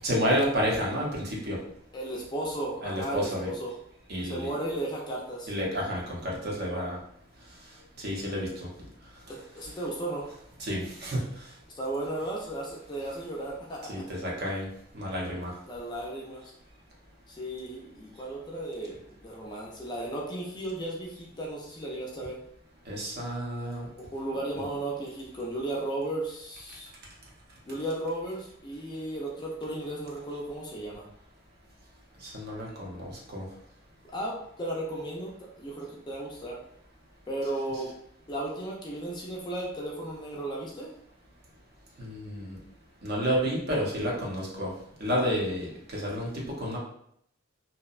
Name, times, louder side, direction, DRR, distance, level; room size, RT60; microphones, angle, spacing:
voice 1, 0.0-1.6 2.8-3.5 4.1-4.5 5.5-7.0 8.0-8.7 10.6-11.2 13.9-14.7 14.9-15.5 22.9-23.9 24.6-24.7 32.2-33.4 42.0-42.6 43.0-44.7 45.0-46.8, equal, 55° right, -3 dB, 0.7 m, -30 dB
voice 2, 1.9-3.7 4.2-5.5 9.5-10.3 11.7-13.9 15.7-16.5 17.3-19.0 19.2-22.4 24.0-26.9 27.7-31.1 34.0-35.3 35.6-36.6 37.3-37.9 38.3-40.9, right 1 dB, 20° left, -2 dB, 0.4 m, -35 dB
2.6 x 2.1 x 2.4 m, 0.69 s
head